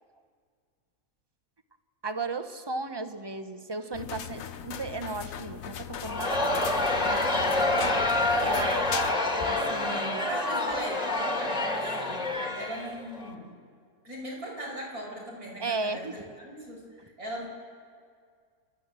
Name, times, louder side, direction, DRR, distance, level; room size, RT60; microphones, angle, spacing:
voice 1, 2.0-6.6 7.0-8.0 8.4-8.9 9.5-10.3 15.6-16.1, right 3 dB, 20° right, 9 dB, 0.8 m, -35 dB
sound 1, 3.9-9.1, left 9 dB, 65° left, 1.2 m, -38 dB
Crowd, 6.0-13.3, left 2 dB, 25° left, 1.7 m, -27 dB
voice 2, 10.2-12.2 12.6-13.5 14.0-17.5, right 1 dB, 75° right, -2 dB, 5.8 m, -39 dB
29.0 x 13.0 x 7.6 m, 2.1 s
omnidirectional pair, 1.6 m